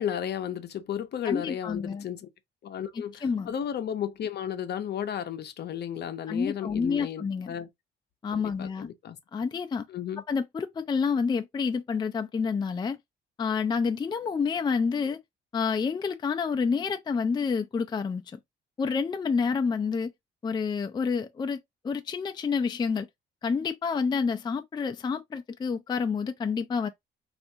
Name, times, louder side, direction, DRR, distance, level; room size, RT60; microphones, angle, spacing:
voice 1, 0.0-2.3 2.6-7.7 8.3-9.2 9.9-10.2, left 9 dB, 55° left, 0.6 m, -34 dB
voice 2, 1.2-2.0 3.2-3.5 6.3-7.5 8.2-8.9 9.3-9.9 10.3-13.0 13.4-15.2 15.5-18.4 18.8-20.1 20.4-21.6 21.8-23.1 23.4-26.9, left 5 dB, 20° left, 0.4 m, -28 dB
3.3 x 2.5 x 2.7 m
cardioid pair, 90°, 20 cm